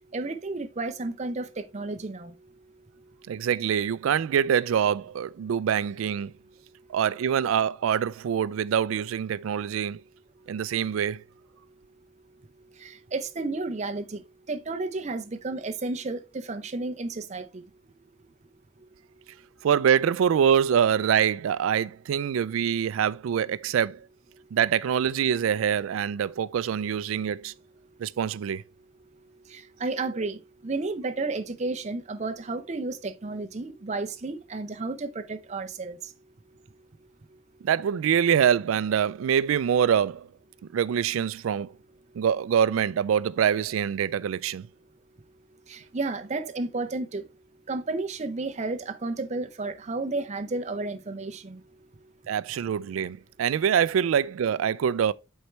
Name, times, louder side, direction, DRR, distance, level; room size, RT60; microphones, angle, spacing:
voice 1, 0.1-2.3 12.8-14.2 14.5-17.6 29.5-36.0 45.7-47.2 47.7-51.6, right 3 dB, 35° right, 0.6 m, -32 dB
voice 2, 3.3-6.3 6.9-10.0 10.5-11.2 19.6-24.1 24.5-27.5 28.0-28.6 37.6-40.3 40.7-41.7 42.1-44.7 52.3-55.1, right 8 dB, 85° right, 0.3 m, -25 dB
8.0 x 4.5 x 3.1 m
head